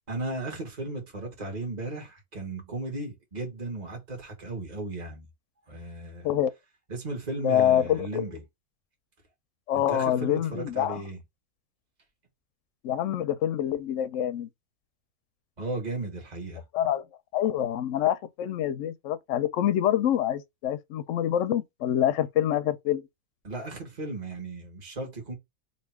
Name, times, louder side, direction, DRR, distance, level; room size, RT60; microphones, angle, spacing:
voice 1, 0.1-5.2 5.7-6.3 6.9-8.4 9.7-11.2 15.6-16.6 23.4-25.3, right 2 dB, 30° right, 1.6 m, -35 dB
voice 2, 7.4-8.2 9.7-11.0 12.8-14.5 16.7-17.1 17.3-23.0, left 11 dB, 65° left, 0.8 m, -26 dB
3.3 x 2.8 x 4.4 m
omnidirectional pair, 1.5 m